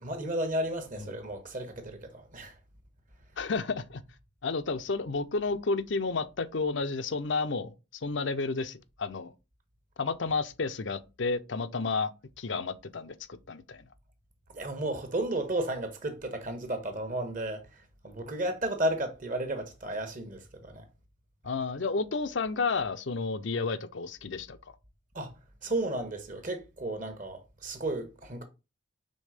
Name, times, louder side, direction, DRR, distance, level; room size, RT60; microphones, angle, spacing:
voice 1, 0.0-2.5 14.5-20.8 25.1-25.3 25.6-28.4, right 1 dB, 40° right, 1.3 m, -33 dB
voice 2, 3.4-4.0 4.4-9.3 10.0-12.1 12.4-13.8 21.4-24.6, left 4 dB, 65° left, 0.6 m, -31 dB
5.4 x 3.6 x 5.0 m
head